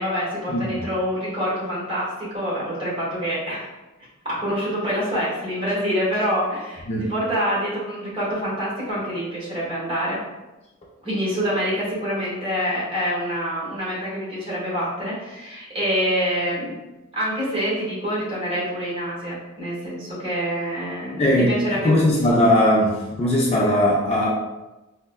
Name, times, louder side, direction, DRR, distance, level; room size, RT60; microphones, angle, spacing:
voice 1, 0.0-3.7 4.2-10.2 11.0-16.7 17.1-22.1, equal, 25° right, -8 dB, 1.3 m, -26 dB
voice 2, 21.2-21.6 21.8-24.3, left 1 dB, 30° left, -3 dB, 0.4 m, -19 dB
4.4 x 2.1 x 2.2 m, 1.0 s
head